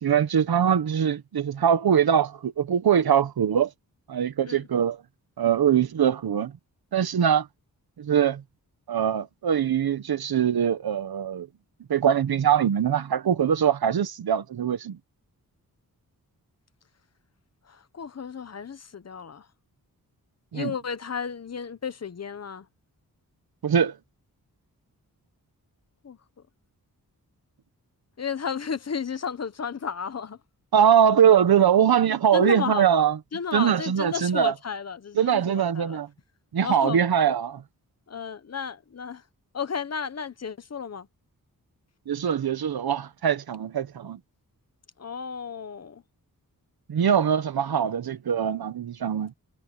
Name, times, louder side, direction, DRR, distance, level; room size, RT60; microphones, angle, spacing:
voice 1, 0.0-3.7 4.1-5.0 5.4-6.5 6.9-7.5 8.0-8.4 8.9-11.5 11.9-15.0 20.5-20.7 23.6-24.0 30.7-33.2 33.5-34.5 35.2-36.1 36.5-37.6 42.1-44.2 46.9-49.3, right 8 dB, 90° right, 1.2 m, -22 dB
voice 2, 17.7-19.5 20.5-22.7 26.0-26.2 28.2-30.4 32.3-32.9 33.3-36.0 36.6-37.0 38.1-39.2 39.5-41.1 45.0-46.0, left 6 dB, 45° left, 1.0 m, -33 dB
wide cardioid pair, 155°, 36 cm